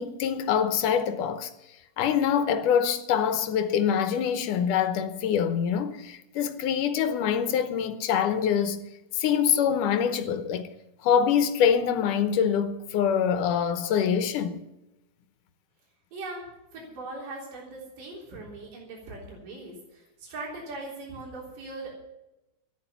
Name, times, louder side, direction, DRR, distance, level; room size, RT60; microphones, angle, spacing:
voice 1, 0.0-1.5 2.0-8.8 9.1-10.7 11.0-14.6, left 8 dB, 80° left, 2.4 m, -25 dB
voice 2, 16.1-21.9, right 2 dB, 80° right, 5.2 m, -40 dB
13.5 x 11.0 x 6.9 m
omnidirectional pair, 3.7 m